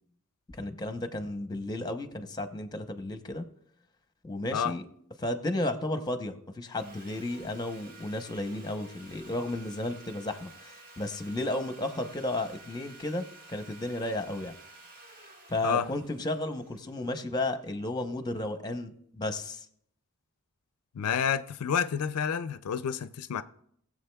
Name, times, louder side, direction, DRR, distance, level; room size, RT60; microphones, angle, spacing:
voice 1, 0.5-3.4 4.2-4.8 5.2-14.5 15.5-19.7, left 1 dB, 20° left, 0.7 m, -33 dB
Sawing, 6.7-17.8, right 2 dB, 45° right, 1.7 m, -52 dB
voice 2, 20.9-23.4, left 7 dB, 80° left, 0.4 m, -29 dB
19.5 x 7.4 x 2.3 m
head